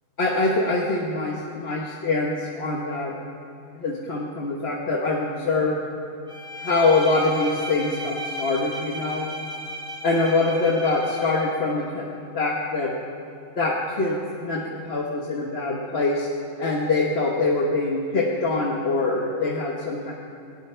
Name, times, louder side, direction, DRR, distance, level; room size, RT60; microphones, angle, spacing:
voice 1, 0.2-3.1 3.7-5.8 6.5-9.3 10.0-12.1 12.3-12.9 13.6-16.3 16.6-20.1, left 3 dB, 50° left, -2 dB, 1.4 m, -24 dB
Bowed string instrument, 6.3-11.6, equal, 20° right, 2.4 m, -35 dB
18.5 x 18.0 x 3.4 m, 2.6 s
omnidirectional pair, 1.4 m